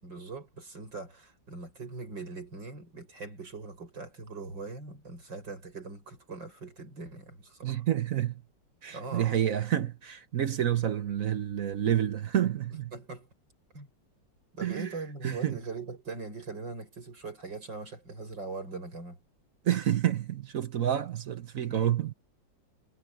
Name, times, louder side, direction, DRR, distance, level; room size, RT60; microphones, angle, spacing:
voice 1, 0.0-7.8 8.9-9.5 12.9-13.3 13.7-13.9 14.5-19.2 21.7-21.9, right 3 dB, 80° right, 7.5 m, -41 dB
voice 2, 7.6-8.3 8.8-12.9 14.6-14.9 15.2-15.6 19.6-22.1, right 10 dB, 55° right, 1.2 m, -29 dB
omnidirectional pair, 2.0 m